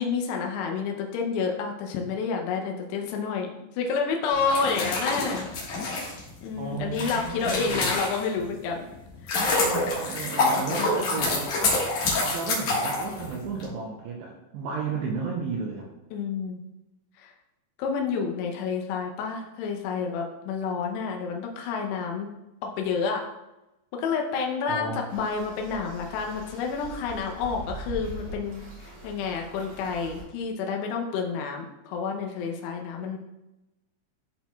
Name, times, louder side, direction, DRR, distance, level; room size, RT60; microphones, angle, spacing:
voice 1, 0.0-5.5 6.4-8.8 10.7-11.5 16.1-16.6 17.2-17.3 17.8-22.3 22.6-23.3 23.9-33.2, left 5 dB, 90° left, 2 dB, 2.4 m, -29 dB
sound 1, 4.4-8.5 9.0-13.7, left 2 dB, 70° left, 1.8 m, -27 dB
voice 2, 6.6-7.9 9.6-11.6 12.3-15.9 24.7-25.0, right 5 dB, 85° right, -2 dB, 2.5 m, -33 dB
sound 2, 25.1-30.2, right 1 dB, 55° right, 4.1 m, -42 dB
13.0 x 4.4 x 2.3 m, 0.96 s
omnidirectional pair, 5.8 m